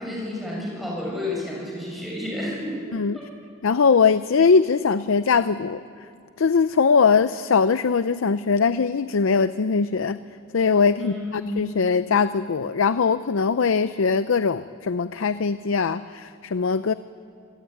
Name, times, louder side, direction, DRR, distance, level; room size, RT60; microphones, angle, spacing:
voice 1, 0.0-2.8 3.1-3.3 11.0-11.5, left 1 dB, ahead, -4 dB, 7.2 m, -31 dB
voice 2, 3.6-5.8 6.4-10.2 10.5-16.9, left 5 dB, 80° left, 13 dB, 0.5 m, -21 dB
26.5 x 16.5 x 9.4 m, 2.4 s
head